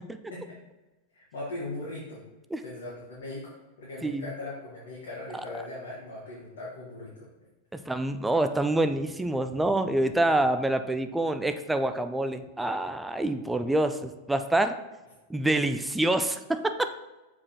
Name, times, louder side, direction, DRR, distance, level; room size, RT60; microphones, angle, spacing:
voice 1, 1.1-2.2 2.6-7.3, left 2 dB, 55° left, -7 dB, 2.1 m, -39 dB
voice 2, 7.7-14.8 15.3-16.9, right 1 dB, 5° right, 8 dB, 0.5 m, -26 dB
7.2 x 4.8 x 4.6 m, 1.1 s
figure-of-eight pair, 90°, 0 cm